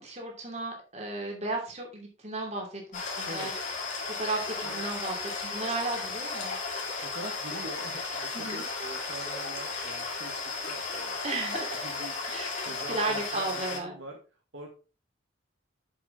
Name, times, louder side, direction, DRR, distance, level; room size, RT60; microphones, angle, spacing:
voice 1, 0.0-3.5 4.2-6.6 8.3-8.7 11.2-11.9 12.3-13.9, right 2 dB, 35° right, 0 dB, 2.8 m, -34 dB
sound 1, 2.9-13.8, left 4 dB, 40° left, 2.3 m, -35 dB
voice 2, 7.0-10.4 10.7-11.2 11.8-12.2 12.7-14.2 14.5-14.7, right 2 dB, 70° right, 1 dB, 2.0 m, -43 dB
7.9 x 6.9 x 3.8 m, 0.33 s
head